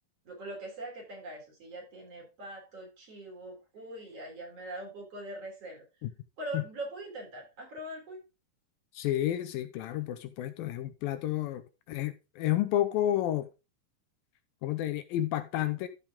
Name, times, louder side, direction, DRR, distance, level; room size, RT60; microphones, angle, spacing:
voice 1, 0.3-5.8 6.4-8.2, right 1 dB, 40° right, 4.1 m, -42 dB
voice 2, 8.9-13.5 14.6-15.9, left 13 dB, 80° left, 2.3 m, -31 dB
13.5 x 5.3 x 3.5 m
omnidirectional pair, 4.3 m